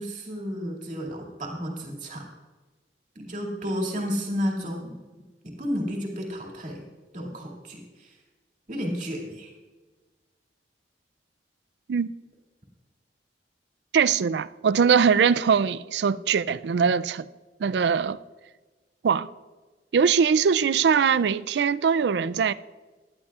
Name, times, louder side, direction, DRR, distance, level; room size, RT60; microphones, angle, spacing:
voice 1, 0.0-2.2 3.2-5.0 5.6-6.8 7.1-8.1 8.7-9.5, equal, 45° right, 2.5 m, -32 dB
voice 2, 13.9-17.3 17.6-18.2 19.0-19.3 19.9-22.5, right 6 dB, 70° right, 0.4 m, -22 dB
17.5 x 11.5 x 2.4 m
head